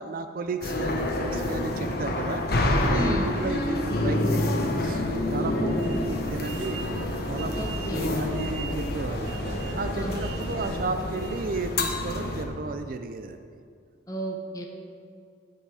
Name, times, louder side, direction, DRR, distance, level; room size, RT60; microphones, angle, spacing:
voice 1, 0.0-2.4 2.8-6.8 7.3-9.3 9.8-13.6, right 3 dB, 50° right, 8 dB, 0.4 m, -33 dB
sound 1, 0.6-12.4, left 1 dB, 55° left, 1.1 m, -28 dB
voice 2, 2.9-3.3 7.6-8.1 9.9-10.3 14.1-14.7, equal, 20° left, 1 dB, 0.9 m, -33 dB
sound 2, 3.3-11.1, equal, 10° right, 0.9 m, -44 dB
sound 3, 5.7-11.6, right 3 dB, 80° right, 0.8 m, -40 dB
15.5 x 5.7 x 4.9 m, 2.3 s
head